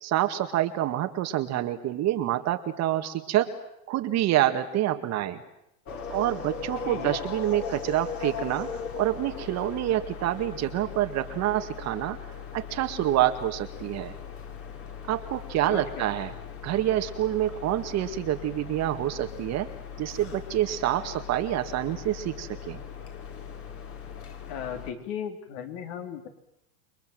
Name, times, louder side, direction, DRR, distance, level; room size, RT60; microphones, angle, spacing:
voice 1, 0.0-3.5 3.9-5.4 6.1-8.7 9.0-12.2 12.5-14.1 15.1-16.3 16.6-19.7 20.0-22.8, right 13 dB, 35° right, 7 dB, 2.0 m, -27 dB
sound 1, 5.9-24.9, left 6 dB, 30° left, 3.6 m, -39 dB
voice 2, 15.6-16.1 24.5-26.3, left 8 dB, 50° left, 5 dB, 4.1 m, -36 dB
29.0 x 22.5 x 7.8 m, 0.79 s
supercardioid pair, 135°, 45 cm